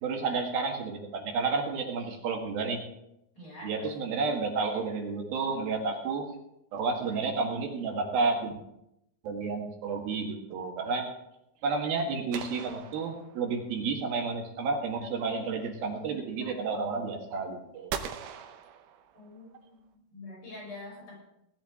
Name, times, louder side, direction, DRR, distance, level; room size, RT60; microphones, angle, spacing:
voice 1, 0.0-2.8 3.6-6.3 6.7-8.5 9.2-11.1 11.6-17.9, right 4 dB, 75° right, 2 dB, 3.4 m, -31 dB
voice 2, 3.3-3.9 19.2-19.8 20.1-21.2, left 2 dB, 55° left, -4 dB, 7.9 m, -45 dB
sound 1, 12.3-13.8 17.9-19.5, right 9 dB, 90° right, 2.9 m, -40 dB
18.0 x 11.5 x 3.7 m, 0.83 s
omnidirectional pair, 4.4 m